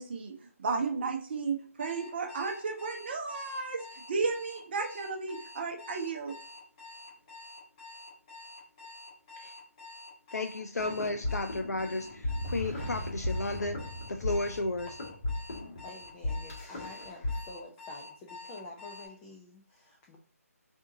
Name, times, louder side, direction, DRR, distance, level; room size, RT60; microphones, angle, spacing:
voice 1, 0.0-6.3, right 4 dB, 40° right, 0.7 m, -34 dB
Alarm, 1.8-19.1, left 3 dB, 30° left, 2.0 m, -48 dB
voice 2, 10.3-13.8 14.1-15.0, left 2 dB, 90° left, 0.4 m, -33 dB
sound 1, 10.8-17.3, left 2 dB, 45° left, 1.5 m, -36 dB
voice 3, 15.8-20.2, left 2 dB, 10° left, 0.3 m, -48 dB
3.7 x 2.6 x 3.8 m
figure-of-eight pair, 150°, 8 cm